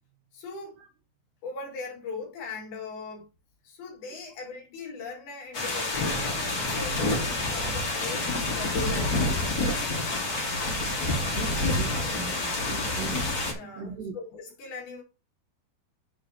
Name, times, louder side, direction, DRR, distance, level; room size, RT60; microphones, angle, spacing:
voice 1, 0.3-0.8 1.4-3.3 3.6-9.2 13.5-15.0, left 4 dB, 70° left, 4.1 m, -39 dB
sound 1, 5.5-13.5, left 2 dB, 45° left, 1.2 m, -28 dB
voice 2, 11.4-13.2 13.8-14.2, right 5 dB, 75° right, 2.1 m, -39 dB
8.5 x 6.6 x 2.9 m
omnidirectional pair, 4.7 m